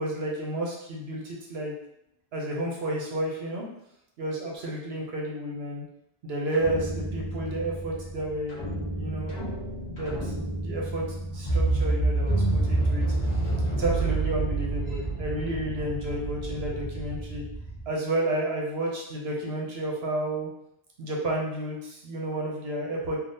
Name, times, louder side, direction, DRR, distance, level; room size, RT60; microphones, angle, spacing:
voice 1, 0.0-1.7 2.3-3.7 4.2-5.8 6.2-9.5 9.8-13.0 13.3-13.5 13.8-17.4 17.9-20.5 21.0-23.2, right 1 dB, 65° right, -1 dB, 0.9 m, -31 dB
sound 1, 6.5-17.8, right 2 dB, 40° left, 1.0 m, -29 dB
3.4 x 2.4 x 2.6 m, 0.78 s
omnidirectional pair, 1.2 m